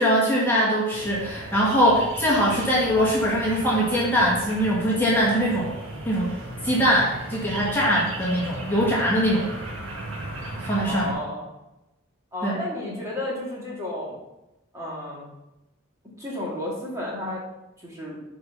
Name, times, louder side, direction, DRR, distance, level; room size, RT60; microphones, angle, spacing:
voice 1, 0.0-5.7 6.1-6.3 6.6-9.5 10.6-11.2 12.4-12.6, equal, 10° left, -6 dB, 1.8 m, -22 dB
sound 1, 0.9-11.1, right 1 dB, 80° right, 1.7 m, -36 dB
voice 2, 10.8-11.4 12.3-14.1 14.7-15.3 16.2-17.4 17.8-18.2, left 1 dB, 15° right, -5 dB, 2.5 m, -32 dB
8.3 x 4.7 x 5.8 m, 0.95 s
head